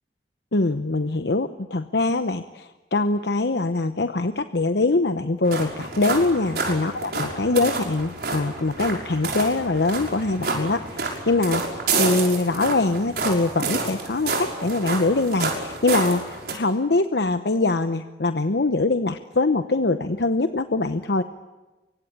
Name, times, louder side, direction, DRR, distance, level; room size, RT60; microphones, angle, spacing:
voice 1, 0.5-21.2, left 3 dB, 75° left, 9 dB, 0.9 m, -23 dB
sound 1, 5.4-16.5, right 3 dB, 60° right, 6.0 m, -29 dB
25.0 x 24.0 x 8.9 m, 1.2 s
head